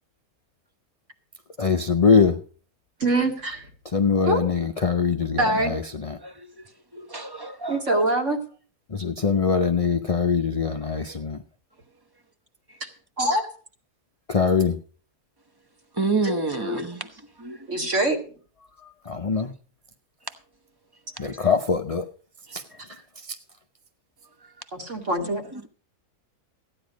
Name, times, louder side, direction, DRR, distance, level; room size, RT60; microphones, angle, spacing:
voice 1, 1.6-2.3 3.9-6.2 8.9-11.4 14.3-14.7 19.1-19.5 21.2-22.1 22.5-22.6, left 5 dB, 40° left, 0.5 m, -22 dB
voice 2, 3.0-3.7 4.2-4.4 5.4-5.7 7.7-8.4 12.8-12.9 13.2-13.5 16.2-16.8 17.7-18.2 24.7-25.4, right 2 dB, 45° right, 2.5 m, -24 dB
voice 3, 6.2-6.6 6.9-8.1 16.0-17.1 17.4-18.0 21.2-21.4 25.2-25.7, right 3 dB, 20° right, 0.8 m, -30 dB
15.0 x 9.9 x 5.1 m
omnidirectional pair, 1.7 m